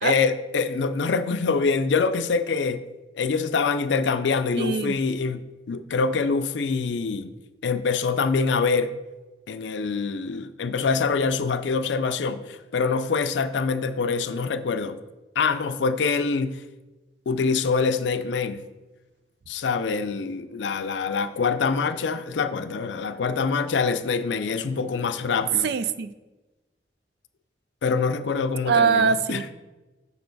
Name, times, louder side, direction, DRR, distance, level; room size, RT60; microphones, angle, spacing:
voice 1, 0.0-2.8 3.1-7.3 7.6-8.9 9.5-15.0 15.4-16.6 17.3-18.6 19.5-25.7 27.8-29.4, left 4 dB, 85° left, 11 dB, 0.4 m, -25 dB
voice 2, 4.6-5.0 25.6-26.1 28.7-29.5, right 5 dB, 65° right, 13 dB, 0.4 m, -23 dB
6.8 x 5.2 x 3.9 m, 1.1 s
head